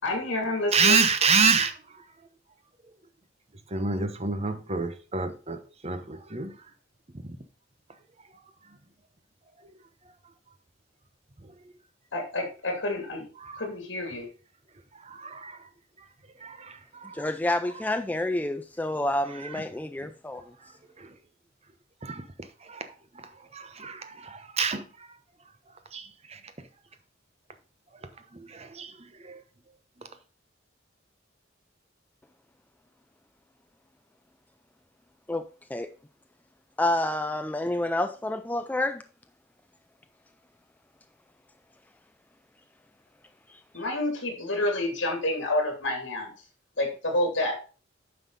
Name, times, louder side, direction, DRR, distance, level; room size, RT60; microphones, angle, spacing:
voice 1, 0.0-1.1 12.1-13.2 13.6-14.3 43.7-46.3 46.8-47.6, left 1 dB, 70° left, 2.7 m, -29 dB
voice 2, 0.7-1.7 3.7-6.5 15.1-15.6 16.4-16.7 17.0-17.1 22.0-22.2 22.7-22.9 23.5-24.8 25.9-26.4 28.5-28.9 29.2-29.4, right 5 dB, 35° right, 0.9 m, -27 dB
voice 3, 17.1-20.4 35.3-35.9 36.8-39.0 43.5-43.6, left 1 dB, 10° left, 0.3 m, -29 dB
9.3 x 5.7 x 4.0 m
head